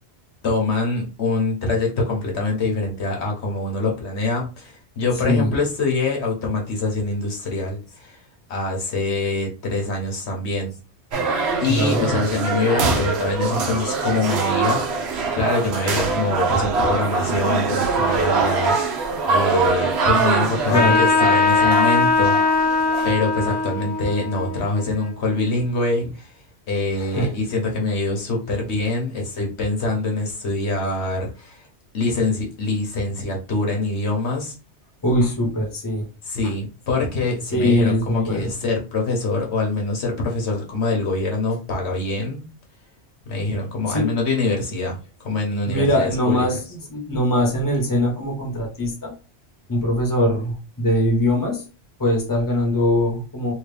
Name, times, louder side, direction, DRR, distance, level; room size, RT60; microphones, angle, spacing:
voice 1, 0.4-8.2 8.5-10.7 11.6-22.8 23.0-26.3 26.7-31.7 31.9-34.5 36.2-42.5 43.3-46.4, left 2 dB, 80° left, 0 dB, 1.3 m, -24 dB
sound 1, 11.1-23.1, right 4 dB, 75° right, 1.0 m, -23 dB
voice 2, 11.7-12.1 20.7-21.0 27.0-27.3 35.0-36.1 37.5-38.5 43.9-44.2 45.7-46.6 46.9-49.1 49.7-51.6 52.0-53.5, left 1 dB, 20° left, 0 dB, 1.0 m, -21 dB
Trumpet, 20.7-25.7, left 4 dB, 50° left, 1.3 m, -21 dB
3.0 x 2.8 x 3.3 m, 0.33 s
omnidirectional pair, 1.1 m